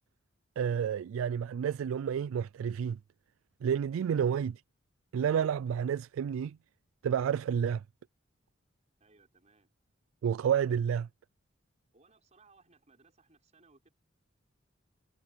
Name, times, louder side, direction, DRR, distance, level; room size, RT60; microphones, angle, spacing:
voice 1, 0.6-3.0 3.6-4.6 5.1-6.6 7.0-7.8 10.2-11.1, right 8 dB, 90° right, 0.3 m, -30 dB
voice 2, 9.0-9.7 11.9-13.9, right 3 dB, 35° right, 5.0 m, -64 dB
head